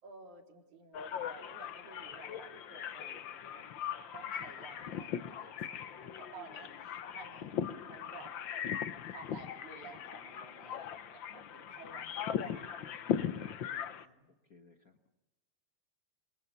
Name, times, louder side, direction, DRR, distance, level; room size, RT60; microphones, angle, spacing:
voice 1, 0.0-3.8 4.1-8.3 9.1-14.3, right 4 dB, 85° right, 1 dB, 5.3 m, -54 dB
sound 1, 0.9-14.0, left 8 dB, 65° left, 1.2 m, -39 dB
voice 2, 11.3-12.1 14.5-15.1, left 5 dB, 40° left, 4 dB, 1.3 m, -63 dB
27.0 x 26.5 x 6.9 m, 1.0 s
omnidirectional pair, 3.3 m